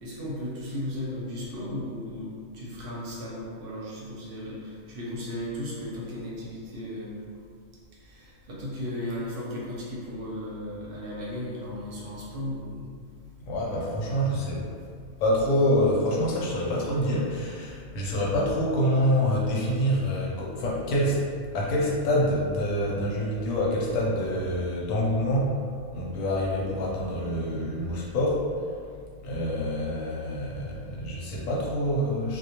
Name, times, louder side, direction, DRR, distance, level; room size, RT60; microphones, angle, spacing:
voice 1, 0.0-7.1 8.0-12.9, left 1 dB, 60° right, -6 dB, 0.7 m, -35 dB
voice 2, 13.4-14.6 15.2-21.2 21.5-25.6 25.9-28.4 29.2-32.4, equal, 80° left, -4 dB, 1.0 m, -26 dB
2.2 x 2.1 x 2.8 m, 2.1 s
omnidirectional pair, 1.4 m